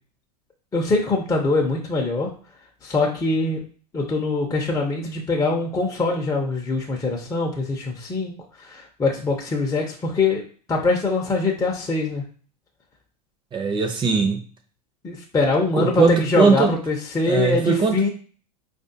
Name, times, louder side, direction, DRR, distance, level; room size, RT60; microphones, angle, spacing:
voice 1, 0.7-2.3 2.8-3.6 3.9-8.3 8.6-10.4 10.7-12.2 15.0-18.1, left 3 dB, 15° left, -1 dB, 0.7 m, -23 dB
voice 2, 13.5-14.4 15.7-16.7 17.3-18.1, right 5 dB, 25° right, 6 dB, 0.7 m, -20 dB
4.8 x 2.5 x 2.7 m, 0.42 s
hypercardioid pair, 95°, 20 cm